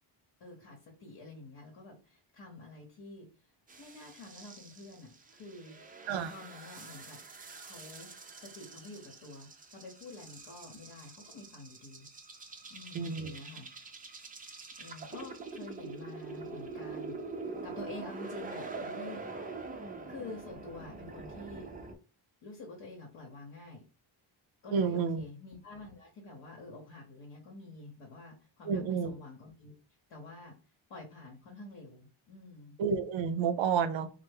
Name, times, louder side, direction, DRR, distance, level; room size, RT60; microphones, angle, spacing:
voice 1, 0.4-3.3 3.8-5.7 6.3-7.2 7.6-8.1 8.4-12.1 12.7-13.7 14.8-17.2 17.6-19.2 20.1-21.7 22.4-23.8 24.6-29.8 30.1-30.5 30.9-32.8, left 2 dB, 65° left, 0.9 m, -48 dB
sound 1, 3.7-21.9, right 3 dB, 20° right, 0.4 m, -45 dB
voice 2, 12.9-13.4 24.7-25.2 28.7-29.1 32.8-34.1, right 6 dB, 70° right, 0.6 m, -30 dB
3.2 x 2.0 x 3.3 m
cardioid pair, 110°, 47 cm